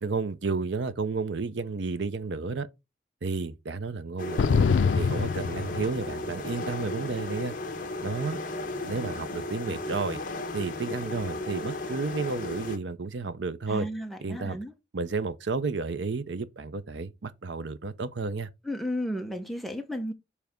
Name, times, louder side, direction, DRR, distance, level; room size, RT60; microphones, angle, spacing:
voice 1, 0.0-2.7 3.2-4.7 4.9-7.5 8.0-8.4 8.8-10.2 10.5-13.9 14.2-14.6 14.9-18.5, right 4 dB, 75° right, 0.6 m, -32 dB
sound 1, 4.2-12.8, left 2 dB, 45° left, 1.1 m, -35 dB
sound 2, 4.4-6.3, left 5 dB, 90° left, 0.4 m, -25 dB
voice 2, 13.7-14.7 18.6-20.1, equal, ahead, 0.9 m, -33 dB
7.1 x 3.4 x 5.0 m
head